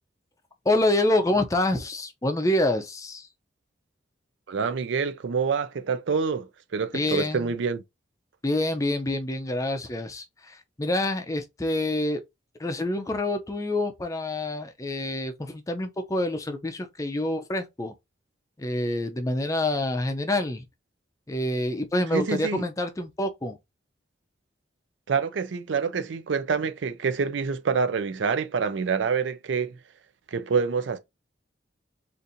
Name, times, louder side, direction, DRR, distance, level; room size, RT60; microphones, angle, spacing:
voice 1, 0.7-3.3 6.9-7.5 8.4-12.2 12.6-17.9 18.6-20.6 21.3-23.6, left 1 dB, 15° left, 0.4 m, -27 dB
voice 2, 4.5-7.8 22.1-22.7 25.1-29.8 30.3-31.0, right 5 dB, 75° right, 0.4 m, -27 dB
4.0 x 2.5 x 2.5 m
head